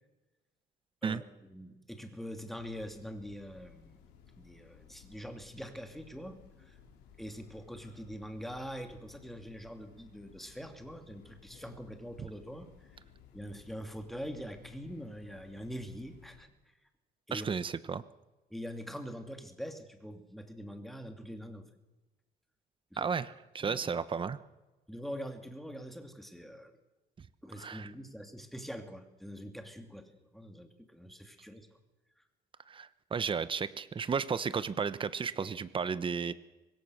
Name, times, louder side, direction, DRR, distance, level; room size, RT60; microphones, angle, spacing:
voice 1, 1.0-3.9 4.4-6.8 7.2-13.0 13.3-16.7 17.3-17.5 18.5-21.7 22.9-23.1 23.6-23.9 24.9-26.8 27.4-31.7, equal, ahead, 5 dB, 2.8 m, -44 dB
Train, 2.5-16.4, left 7 dB, 90° left, 4.7 m, -58 dB
voice 2, 17.3-18.0 23.0-24.4 27.6-27.9 32.7-36.3, right 6 dB, 30° right, 15 dB, 1.1 m, -33 dB
24.5 x 21.0 x 6.6 m, 1.1 s
cardioid pair, 110°, 17 cm